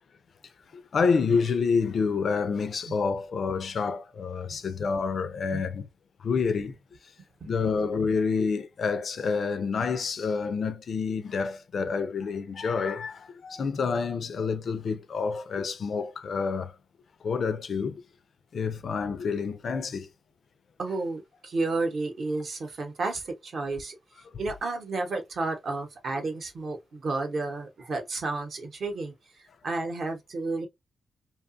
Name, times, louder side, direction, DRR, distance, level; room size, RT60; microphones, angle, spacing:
voice 1, 0.7-5.9 6.2-6.7 7.5-16.7 17.2-18.0 18.5-20.1, left 5 dB, 50° left, 0.3 m, -28 dB
voice 2, 20.8-24.0 24.4-29.1 29.6-30.7, right 3 dB, 50° right, 0.8 m, -31 dB
2.7 x 2.3 x 2.5 m
wide cardioid pair, 145°, 0 cm